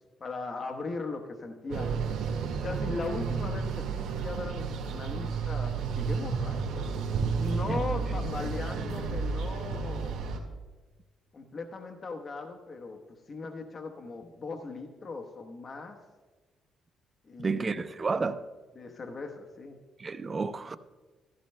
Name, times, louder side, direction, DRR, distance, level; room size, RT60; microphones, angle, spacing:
voice 1, 0.2-1.9 2.6-3.9 4.1-7.0 7.3-10.2 11.3-13.0 13.3-16.0 17.2-17.8 18.8-19.8, left 3 dB, 40° left, 1.0 m, -38 dB
sound 1, 1.7-10.4, right 5 dB, 85° right, 1.7 m, -32 dB
voice 2, 17.4-18.4 20.0-20.8, right 4 dB, 35° right, 0.6 m, -31 dB
15.5 x 15.0 x 2.2 m
cardioid pair, 90°, 0 cm